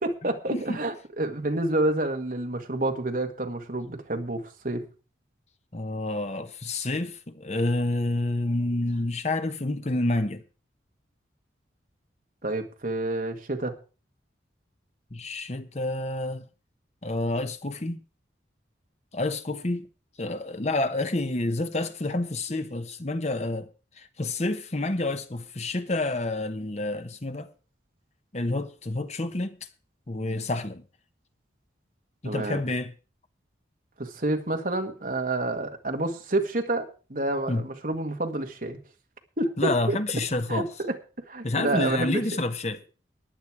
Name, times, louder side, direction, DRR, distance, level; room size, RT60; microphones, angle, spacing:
voice 1, 0.0-4.9 12.4-13.8 32.2-32.6 34.0-38.8 39.4-40.0 40.5-41.0 41.3-42.2, right 2 dB, 45° right, 1.9 m, -28 dB
voice 2, 5.7-10.4 15.1-16.5 17.0-18.0 19.1-19.8 20.2-23.7 24.0-27.5 28.3-29.6 30.1-30.8 32.2-32.9 37.5-37.6 39.6-40.7 41.4-42.8, left 2 dB, 35° left, 1.0 m, -28 dB
15.0 x 10.5 x 4.8 m
head